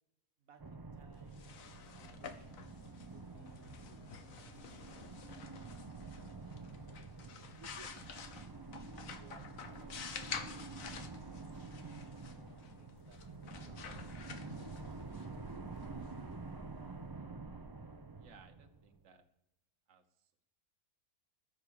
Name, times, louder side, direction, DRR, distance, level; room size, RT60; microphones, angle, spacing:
voice 1, 0.4-2.6 3.1-4.1 7.5-8.2 8.8-13.2 13.7-15.6, right 5 dB, 80° right, 6 dB, 1.5 m, -64 dB
sound 1, 0.6-19.0, right 3 dB, 25° right, 0.6 m, -48 dB
sound 2, 1.2-16.9, left 6 dB, 75° left, 1.4 m, -50 dB
voice 2, 18.2-19.2 19.9-20.4, right 6 dB, 60° right, 5 dB, 1.4 m, -62 dB
14.5 x 6.6 x 7.0 m, 0.87 s
omnidirectional pair, 1.5 m